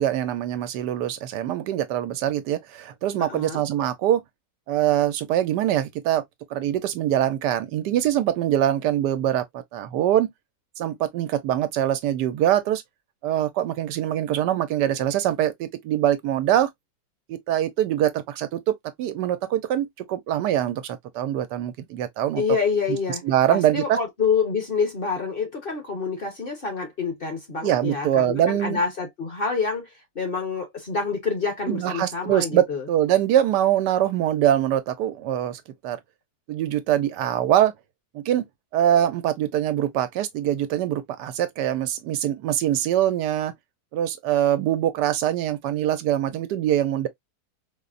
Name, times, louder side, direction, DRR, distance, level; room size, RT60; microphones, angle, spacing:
voice 1, 0.0-4.2 4.7-6.2 6.5-9.4 9.7-10.3 10.8-12.8 13.2-16.7 17.3-22.4 23.2-24.0 27.6-28.8 31.7-36.0 36.5-37.7 38.1-38.5 38.7-43.5 43.9-47.1, right 11 dB, 90° right, 1.3 m, -23 dB
voice 2, 3.2-3.6 22.4-23.2 23.5-29.9 30.1-32.9, left 5 dB, 40° left, 0.9 m, -27 dB
4.1 x 2.1 x 2.4 m
omnidirectional pair, 1.7 m